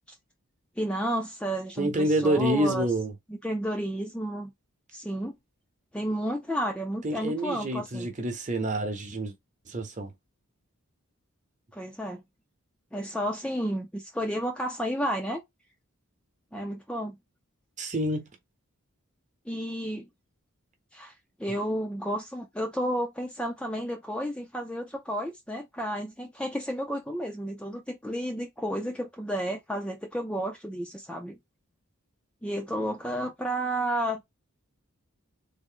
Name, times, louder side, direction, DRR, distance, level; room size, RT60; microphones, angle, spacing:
voice 1, 0.8-2.9 3.3-4.5 4.9-5.4 5.9-8.1 11.7-12.2 12.9-15.4 16.5-17.2 19.5-20.1 20.9-21.1 21.4-31.4 32.4-34.2, equal, 5° left, 0.4 m, -31 dB
voice 2, 1.8-3.1 7.0-9.3 9.7-10.1 17.8-18.3, right 1 dB, 35° right, 0.8 m, -27 dB
3.7 x 2.1 x 3.6 m
head